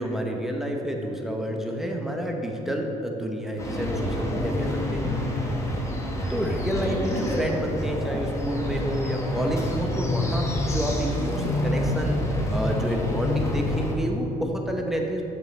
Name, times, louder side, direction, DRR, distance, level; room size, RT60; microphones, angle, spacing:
voice 1, 0.0-5.2 6.3-15.2, equal, ahead, 1 dB, 0.9 m, -29 dB
sound 1, 3.6-13.9, left 1 dB, 15° left, 1.2 m, -27 dB
8.1 x 6.3 x 4.3 m, 3.0 s
cardioid pair, 110°, 17 cm